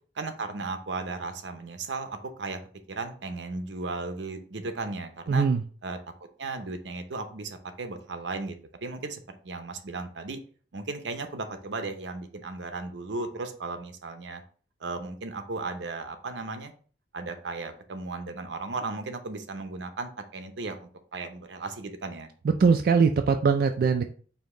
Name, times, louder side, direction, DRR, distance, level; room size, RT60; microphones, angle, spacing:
voice 1, 0.2-2.6 2.9-5.5 5.8-6.0 6.4-10.4 10.7-14.4 14.8-16.7 17.1-22.3, right 3 dB, 85° right, 7 dB, 0.7 m, -35 dB
voice 2, 5.3-5.6 22.4-24.0, right 5 dB, 55° right, 5 dB, 0.3 m, -21 dB
5.1 x 2.7 x 3.7 m, 0.43 s
head